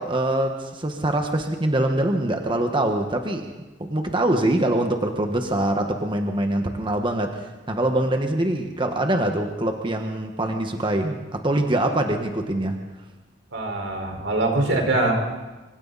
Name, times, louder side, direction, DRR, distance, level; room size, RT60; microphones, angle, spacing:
voice 1, 0.0-3.5 3.8-12.8, right 1 dB, 25° right, 4 dB, 1.4 m, -24 dB
voice 2, 13.5-15.1, right 2 dB, 90° right, 2 dB, 5.1 m, -23 dB
26.0 x 25.5 x 4.2 m, 1.2 s
head